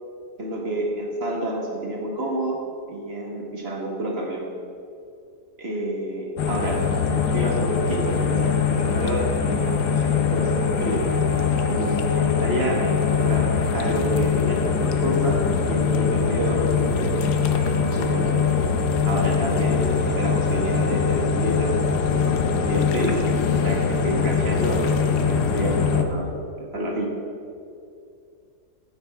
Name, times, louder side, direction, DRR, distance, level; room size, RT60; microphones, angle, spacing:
voice 1, 0.4-2.6 2.9-4.4 5.6-6.8 7.1-11.0 11.7-17.1 17.5-18.4 19.1-19.8 20.2-21.7 22.2-22.4 22.7-23.2 23.6-26.3 26.6-27.1, right 1 dB, 40° right, -1 dB, 1.7 m, -28 dB
sound 1, 6.4-26.0, left 6 dB, 80° left, 1.3 m, -22 dB
15.0 x 7.9 x 3.5 m, 2.4 s
omnidirectional pair, 1.7 m